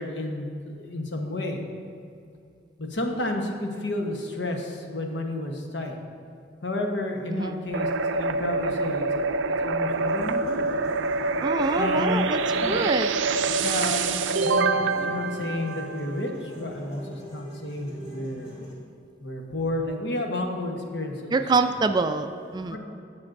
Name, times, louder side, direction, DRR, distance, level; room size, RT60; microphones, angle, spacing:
voice 1, 0.0-1.6 2.8-6.0 6.6-7.9 8.1-9.2 9.6-10.7 11.7-12.2 12.6-12.8 13.6-16.3 16.6-18.5 19.2-21.3 22.6-22.8, left 1 dB, 70° left, 2 dB, 1.0 m, -31 dB
voice 2, 7.3-7.6 11.4-12.4 12.7-13.1 21.3-22.8, right 4 dB, 25° right, 8 dB, 0.3 m, -25 dB
sound 1, 7.7-16.4, right 3 dB, 90° right, 0.4 m, -26 dB
sound 2, 9.9-18.8, equal, 25° left, 2.2 m, -43 dB
16.5 x 6.1 x 2.6 m, 2.5 s
head